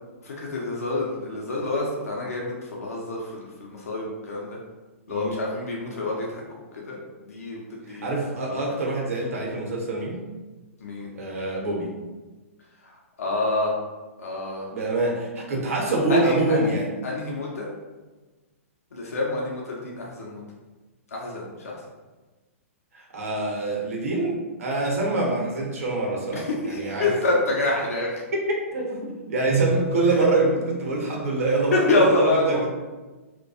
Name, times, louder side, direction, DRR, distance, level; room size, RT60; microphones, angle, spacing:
voice 1, 0.2-4.6 5.1-8.1 8.5-8.6 10.8-11.1 13.2-13.7 14.2-14.7 16.1-16.7 17.0-17.7 18.9-20.4 21.1-21.7 26.3-28.2 30.2-30.3 31.7-32.7, left 2 dB, 85° left, -3 dB, 0.5 m, -27 dB
voice 2, 5.1-5.4 7.9-10.2 11.1-11.9 14.7-16.9 22.9-27.1 28.3-32.7, right 2 dB, 75° right, -1 dB, 0.7 m, -25 dB
2.2 x 2.2 x 2.6 m, 1.2 s
hypercardioid pair, 125°, 8 cm